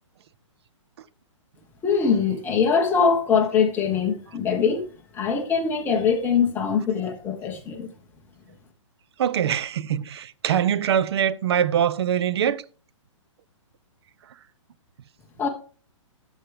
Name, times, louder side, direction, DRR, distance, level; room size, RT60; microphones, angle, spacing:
voice 1, 1.8-4.8 5.1-7.9 15.4-15.5, left 6 dB, 10° left, 1.4 m, -22 dB
voice 2, 9.2-12.6, right 9 dB, 55° right, 0.7 m, -23 dB
12.5 x 6.4 x 3.5 m
hypercardioid pair, 160°, 16 cm